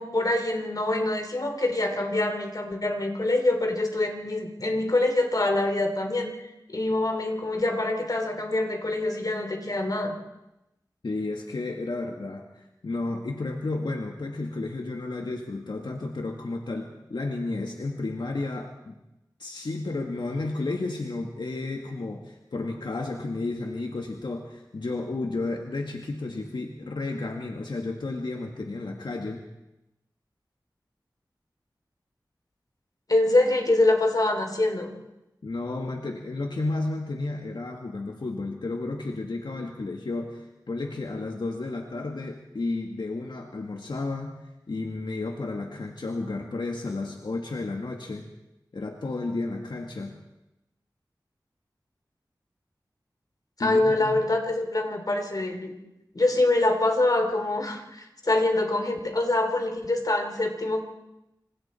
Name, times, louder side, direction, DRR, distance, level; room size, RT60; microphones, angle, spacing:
voice 1, 0.0-10.2 33.1-34.9 53.6-55.7 56.1-60.8, left 2 dB, 55° left, 4 dB, 3.3 m, -25 dB
voice 2, 11.0-19.0 19.4-29.4 35.4-44.3 44.7-48.3 48.7-50.1 53.6-54.2, left 2 dB, 80° left, 2 dB, 1.9 m, -32 dB
27.0 x 26.0 x 4.4 m, 0.92 s
wide cardioid pair, 70°, 8 cm